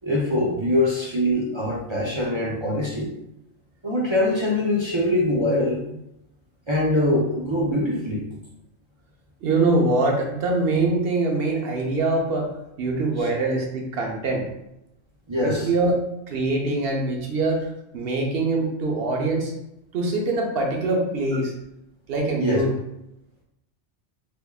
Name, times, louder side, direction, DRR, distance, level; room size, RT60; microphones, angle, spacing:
voice 1, 0.0-3.1 3.8-5.8 6.7-8.2 13.2-13.3 15.3-15.7 21.3-21.4 22.4-22.6, left 1 dB, 40° right, -5 dB, 0.4 m, -23 dB
voice 2, 9.4-12.5 12.8-14.4 15.3-15.9 16.3-17.6 17.9-19.5 19.9-21.5 22.1-22.7, right 2 dB, 60° right, 0 dB, 0.9 m, -23 dB
3.5 x 3.4 x 2.3 m, 0.84 s
omnidirectional pair, 1.3 m